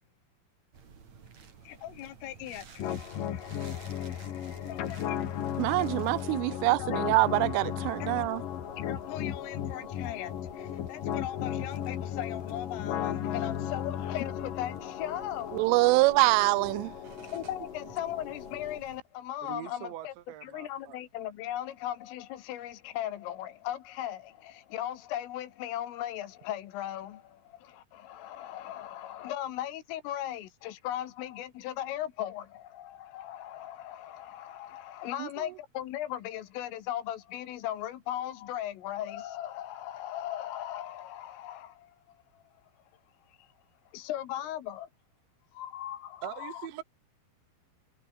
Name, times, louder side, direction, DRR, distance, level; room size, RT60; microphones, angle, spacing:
sound 1, 0.7-19.0, right 6 dB, 40° right, 3.9 m, -53 dB
voice 1, 1.6-5.3 6.8-7.0 8.0-8.3 8.8-16.0 17.2-20.1 20.4-42.4 43.3-43.5 43.9-44.9 45.5-46.7, left 12 dB, 75° left, 4.3 m, -38 dB
sound 2, 2.8-18.8, left 10 dB, 55° left, 2.8 m, -36 dB
voice 2, 5.6-8.4 15.5-16.9 35.2-35.3, right 24 dB, 85° right, 2.9 m, -25 dB
voice 3, 19.4-21.0 46.2-46.8, right 13 dB, 65° right, 4.2 m, -42 dB
omnidirectional pair, 5.9 m